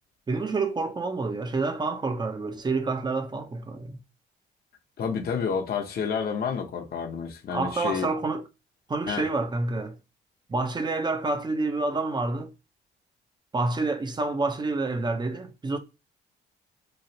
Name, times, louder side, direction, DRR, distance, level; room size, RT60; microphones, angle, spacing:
voice 1, 0.3-4.0 7.5-8.4 8.9-9.9 10.5-12.5 13.5-15.8, right 3 dB, 20° right, 0.5 m, -28 dB
voice 2, 5.0-8.1 9.1-9.3, left 6 dB, 50° left, 0.7 m, -29 dB
3.1 x 2.4 x 2.7 m
cardioid pair, 90°, 20 cm